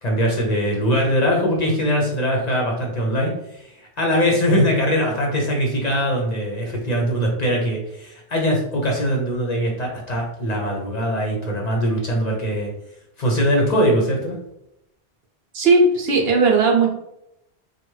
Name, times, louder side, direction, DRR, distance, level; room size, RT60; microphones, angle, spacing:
voice 1, 0.0-12.7 13.2-14.4, equal, 45° left, -1 dB, 0.8 m, -21 dB
voice 2, 15.5-16.9, right 3 dB, 70° right, 0 dB, 1.0 m, -16 dB
3.4 x 2.3 x 3.1 m, 0.82 s
omnidirectional pair, 1.1 m